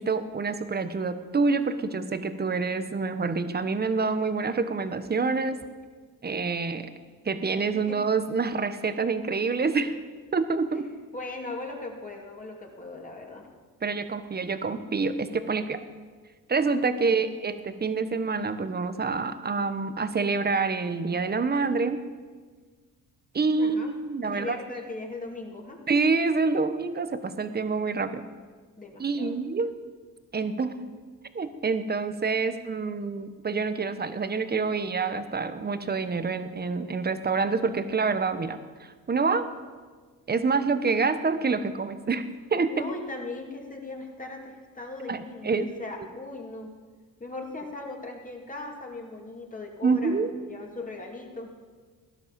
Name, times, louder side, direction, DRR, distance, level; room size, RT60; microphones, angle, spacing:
voice 1, 0.0-5.6 6.2-6.9 7.2-10.0 10.3-10.9 13.8-15.8 16.5-22.0 23.3-24.6 25.9-28.2 29.0-29.7 30.3-30.8 31.3-39.5 40.3-42.7 45.1-45.7 49.8-50.3, right 4 dB, 25° right, 11 dB, 1.2 m, -27 dB
voice 2, 11.1-13.5 17.0-17.2 23.6-23.9 24.3-25.8 28.8-29.3 42.7-46.7 47.2-51.5, left 2 dB, 20° left, 0 dB, 2.8 m, -38 dB
17.0 x 11.5 x 7.4 m, 1.5 s
cardioid pair, 105°, 36 cm